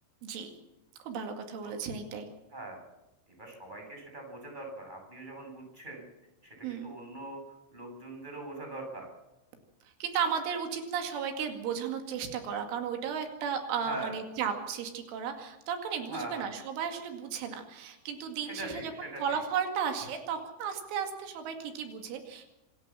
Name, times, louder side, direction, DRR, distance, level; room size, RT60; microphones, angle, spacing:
voice 1, 1.0-2.3 6.6-6.9 10.0-22.5, right 7 dB, 85° right, 5 dB, 4.6 m, -34 dB
voice 2, 2.5-2.8 3.4-6.1 6.4-7.4 7.7-9.1 13.8-14.2 16.1-16.5 18.4-19.4, right 2 dB, 10° right, 1 dB, 7.5 m, -42 dB
26.5 x 13.5 x 7.6 m, 0.96 s
omnidirectional pair, 5.4 m